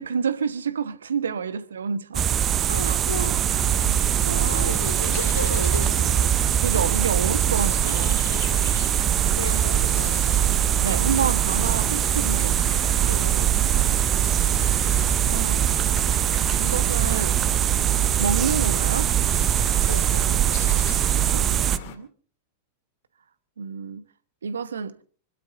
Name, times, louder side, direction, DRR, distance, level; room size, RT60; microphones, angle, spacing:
voice 1, 0.0-2.2 2.8-3.0 4.2-4.8 6.6-8.2 10.8-12.6 15.3-15.7 16.6-17.4 18.2-19.1 21.3-22.1 23.6-24.0 24.4-24.9, right 6 dB, 70° right, 1.2 m, -28 dB
sound 1, 2.1-21.8, right 11 dB, 25° right, 0.7 m, -22 dB
voice 2, 2.7-3.4 3.7-6.3 8.3-8.7 9.3-10.2 13.0-14.0 19.9-20.7, left 1 dB, 80° left, 2.7 m, -35 dB
sound 2, 3.5-22.0, left 7 dB, 50° left, 2.3 m, -39 dB
26.0 x 12.5 x 4.0 m
figure-of-eight pair, 90°, 0 cm